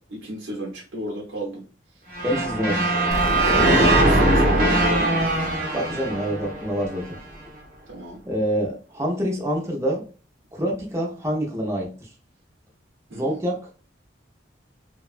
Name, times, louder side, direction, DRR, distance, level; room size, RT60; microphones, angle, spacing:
voice 1, 0.0-1.6 3.4-5.2 7.9-8.2 13.1-13.4, equal, 90° right, -2 dB, 0.6 m, -33 dB
sound 1, 2.1-7.2, right 1 dB, 45° right, 0.7 m, -21 dB
voice 2, 2.2-2.9 5.7-7.2 8.2-10.0 10.5-11.9 13.1-13.6, equal, 15° right, -1 dB, 0.6 m, -26 dB
sound 2, 3.1-5.8, left 1 dB, 55° left, 0.5 m, -34 dB
2.8 x 2.2 x 2.4 m, 0.37 s
head